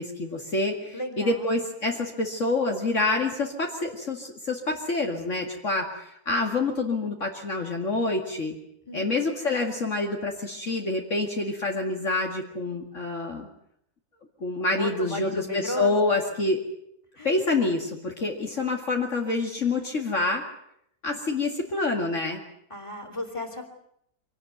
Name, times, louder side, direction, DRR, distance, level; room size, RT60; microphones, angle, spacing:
voice 1, 0.0-8.5 8.9-13.5 14.4-16.6 17.2-20.4 21.0-22.4, left 2 dB, 50° left, 1 dB, 2.5 m, -27 dB
voice 2, 0.9-1.6 8.9-9.3 14.7-16.0 17.2-17.3 18.6-18.8 22.7-23.6, left 1 dB, 20° left, 4 dB, 3.4 m, -34 dB
25.0 x 18.0 x 9.4 m, 0.74 s
omnidirectional pair, 1.6 m